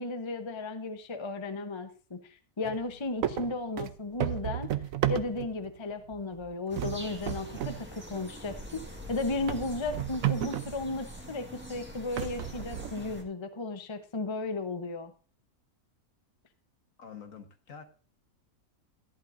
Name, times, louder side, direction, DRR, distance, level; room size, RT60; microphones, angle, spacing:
voice 1, 0.0-4.7 5.1-15.1, left 3 dB, 25° left, 8 dB, 0.8 m, -35 dB
sound 1, 2.6-2.9 3.2-5.7 6.1-6.5 6.8-7.8 8.1-8.2 8.8-8.9 9.5-10.8 11.5-11.6 12.2-13.2, right 11 dB, 65° right, 1.1 m, -32 dB
sound 2, 6.7-13.2, equal, 5° right, 1.7 m, -44 dB
voice 2, 17.0-17.8, left 6 dB, 60° left, 6 dB, 1.7 m, -46 dB
14.0 x 11.5 x 2.6 m, 0.38 s
omnidirectional pair, 1.6 m